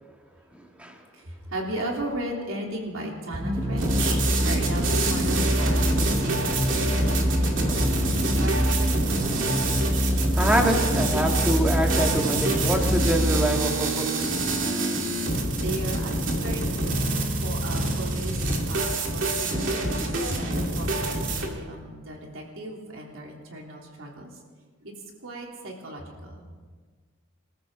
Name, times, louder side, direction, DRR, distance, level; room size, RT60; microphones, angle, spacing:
voice 1, 1.1-9.6 15.1-15.3 15.6-16.7 17.4-18.4 18.7-19.9 20.3-24.3 24.8-24.9 25.2-26.4, right 1 dB, 85° right, -1 dB, 3.4 m, -36 dB
sound 1, 3.3-14.0, equal, 20° right, 1.1 m, -25 dB
sound 2, 3.8-21.5, right 2 dB, 65° right, 2.5 m, -27 dB
voice 2, 10.4-14.3, right 1 dB, 5° right, 1 dB, 1.8 m, -25 dB
26.0 x 14.0 x 3.8 m, 1.5 s
head